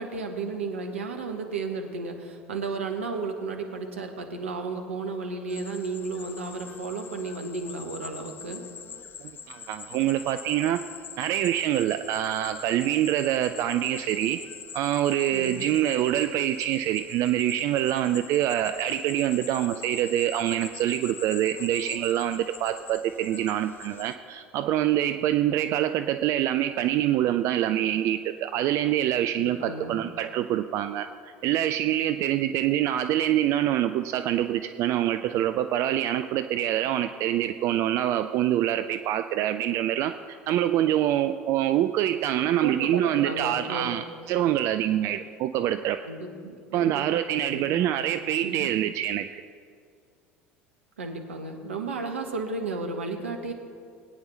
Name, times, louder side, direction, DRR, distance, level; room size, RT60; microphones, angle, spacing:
voice 1, 0.0-8.6 15.3-15.6 29.3-30.0 42.6-44.0 46.0-47.0 47.5-48.0 48.4-48.7 51.0-53.5, right 3 dB, 75° right, 4 dB, 1.3 m, -33 dB
sound 1, 5.5-24.2, left 7 dB, 30° left, 0.7 m, -43 dB
voice 2, 9.2-10.8 11.2-14.4 14.7-46.0 46.7-49.4, right 12 dB, 45° right, 10 dB, 0.4 m, -25 dB
21.0 x 9.5 x 3.2 m, 2.2 s
figure-of-eight pair, 70°, 7 cm